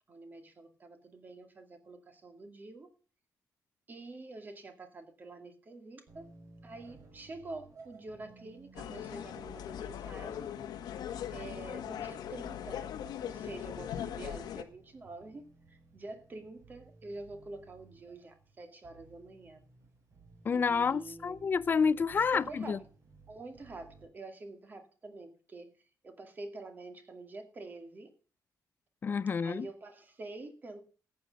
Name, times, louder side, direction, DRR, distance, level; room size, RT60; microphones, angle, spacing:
voice 1, 0.1-2.9 3.9-6.3 6.6-10.5 11.3-12.9 13.2-19.6 20.5-21.5 22.3-22.9 23.3-25.7 26.0-28.1 29.4-30.8, right 2 dB, 25° right, 2.3 m, -47 dB
sound 1, 6.1-24.1, right 3 dB, 45° right, 5.0 m, -58 dB
sound 2, 8.7-14.6, left 10 dB, 90° left, 1.5 m, -40 dB
voice 2, 20.4-22.8 29.0-29.7, left 5 dB, 30° left, 0.5 m, -29 dB
14.0 x 8.7 x 5.3 m
wide cardioid pair, 170°, 7 cm